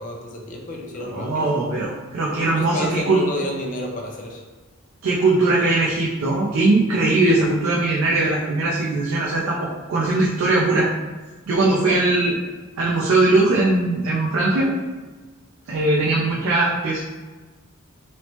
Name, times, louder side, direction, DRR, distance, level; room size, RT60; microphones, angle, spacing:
voice 1, 0.0-1.5 2.4-4.4 11.9-12.0, left 1 dB, 40° left, 0 dB, 0.5 m, -30 dB
voice 2, 1.0-3.2 5.0-10.9 11.5-12.4 12.8-14.7 15.7-17.0, right 2 dB, 85° right, -4 dB, 0.4 m, -20 dB
3.0 x 2.0 x 2.9 m, 1.3 s
head